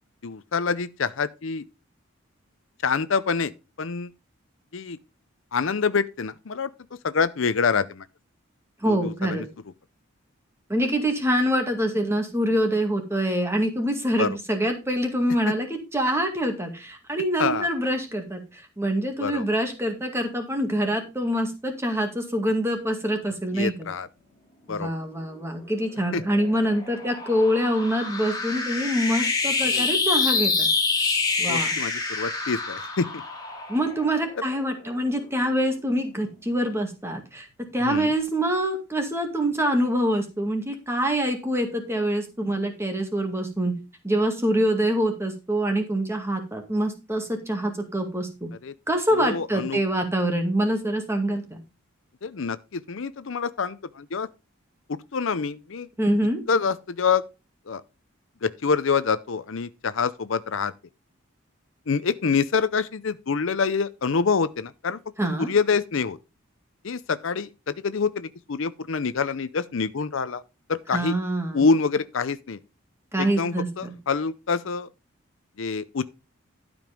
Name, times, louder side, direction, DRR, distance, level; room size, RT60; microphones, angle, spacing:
voice 1, 0.2-1.6 2.8-3.5 3.8-4.1 4.7-5.0 5.5-6.7 7.0-8.0 8.9-9.4 14.2-14.3 17.4-17.7 19.2-19.4 23.5-24.1 24.7-24.9 26.1-26.2 29.6-29.9 31.5-33.1 37.8-38.1 48.6-48.7 49.1-49.8 52.2-54.3 55.1-55.9 56.5-57.2 57.7-57.8 58.4-60.7 61.9-65.0 65.4-66.2 66.8-70.4 70.7-71.1 71.5-72.6 73.2-74.9 75.6-76.0, left 5 dB, 65° left, 0.6 m, -26 dB
voice 2, 8.8-9.5 10.7-23.9 24.7-30.7 31.4-31.7 33.7-37.5 37.7-43.7 44.0-48.5 48.9-51.6 56.0-56.4 65.2-65.5 70.9-71.7 73.1-73.9, equal, 10° right, 2.0 m, -25 dB
sound 1, 26.1-34.8, left 4 dB, 20° left, 2.7 m, -27 dB
12.0 x 5.2 x 5.2 m
head